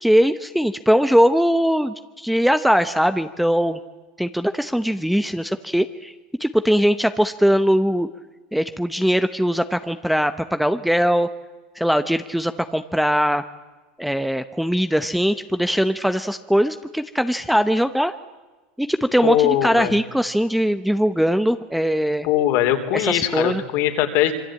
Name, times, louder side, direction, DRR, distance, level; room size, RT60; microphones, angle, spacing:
voice 1, 0.0-3.8 4.2-6.1 6.4-8.1 8.5-11.3 11.7-13.4 14.0-18.1 18.8-22.3 22.9-23.6, equal, ahead, 10 dB, 0.8 m, -20 dB
voice 2, 19.2-19.9 22.2-24.3, left 12 dB, 50° left, 6 dB, 3.5 m, -20 dB
26.0 x 23.5 x 8.8 m, 1.2 s
supercardioid pair, 145°, 5 cm